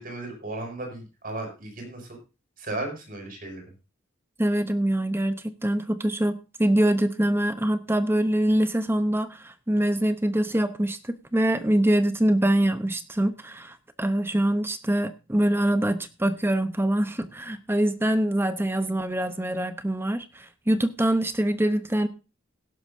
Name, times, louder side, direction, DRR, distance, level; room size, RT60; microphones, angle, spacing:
voice 1, 0.0-2.2 2.6-3.6, right 2 dB, 45° right, 3 dB, 6.2 m, -35 dB
voice 2, 4.4-22.1, right 1 dB, 10° right, 10 dB, 0.8 m, -24 dB
17.0 x 11.5 x 2.7 m, 0.32 s
head